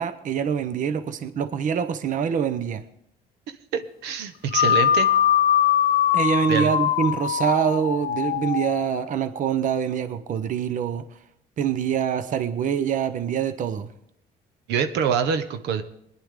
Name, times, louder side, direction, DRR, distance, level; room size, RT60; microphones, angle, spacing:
voice 1, 0.0-2.8 6.1-11.0 11.6-13.9, right 8 dB, 50° right, 11 dB, 0.9 m, -25 dB
voice 2, 3.7-5.1 6.5-6.7 14.7-15.8, right 7 dB, 85° right, 9 dB, 1.0 m, -25 dB
sound 1, 4.5-9.0, left 10 dB, 65° left, 0.8 m, -22 dB
20.0 x 10.5 x 3.7 m, 0.74 s
cardioid pair, 110°, 17 cm